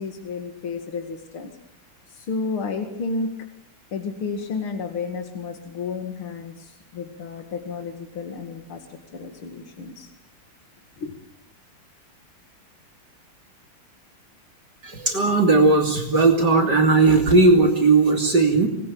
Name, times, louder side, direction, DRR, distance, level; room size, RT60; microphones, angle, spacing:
voice 1, 0.0-1.5 2.1-3.3 3.9-8.8 9.1-10.1 11.0-11.1, left 4 dB, 80° left, 5 dB, 2.9 m, -31 dB
voice 2, 14.8-18.7, right 3 dB, 50° right, 3 dB, 3.4 m, -17 dB
27.5 x 19.5 x 8.6 m, 0.75 s
omnidirectional pair, 2.3 m